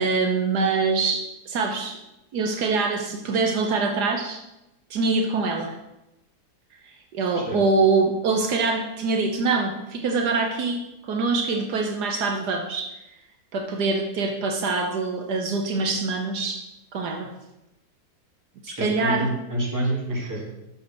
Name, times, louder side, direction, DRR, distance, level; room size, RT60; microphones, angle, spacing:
voice 1, 0.0-2.0 2.3-4.4 4.9-5.8 6.8-13.2 13.5-16.6 16.9-17.3 18.6-19.3 20.1-20.3, right 4 dB, 75° right, 3 dB, 1.5 m, -24 dB
voice 2, 18.7-20.5, right 1 dB, 10° right, -4 dB, 2.3 m, -27 dB
7.4 x 6.6 x 6.0 m, 0.90 s
omnidirectional pair, 1.8 m